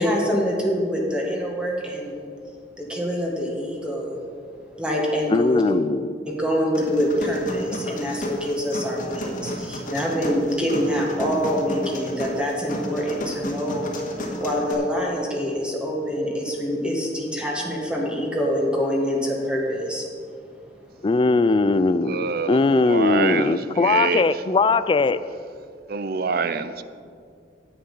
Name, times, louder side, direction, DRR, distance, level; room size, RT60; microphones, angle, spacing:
voice 1, 0.0-2.2 2.8-4.2 4.8-5.6 6.3-13.9 14.4-20.0, equal, 5° right, 1.7 m, -25 dB
voice 2, 5.3-6.1 21.0-25.2, left 3 dB, 30° left, 0.3 m, -20 dB
sound 1, 6.7-14.7, equal, 50° left, 1.7 m, -32 dB
voice 3, 22.0-24.2 25.9-26.8, right 5 dB, 60° right, 0.5 m, -26 dB
10.0 x 8.8 x 5.5 m
head